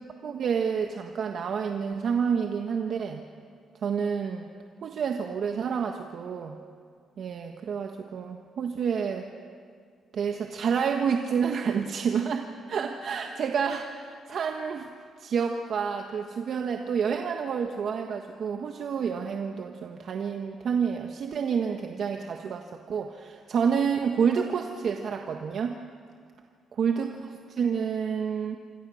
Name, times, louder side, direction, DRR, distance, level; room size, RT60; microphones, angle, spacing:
voice 1, 0.2-3.2 3.8-4.5 4.8-6.6 7.2-9.3 10.1-14.9 15.2-25.8 26.8-28.6, right 6 dB, 60° right, 4 dB, 1.4 m, -29 dB
26.5 x 26.0 x 6.5 m, 2.1 s
cardioid pair, 90°, 0 cm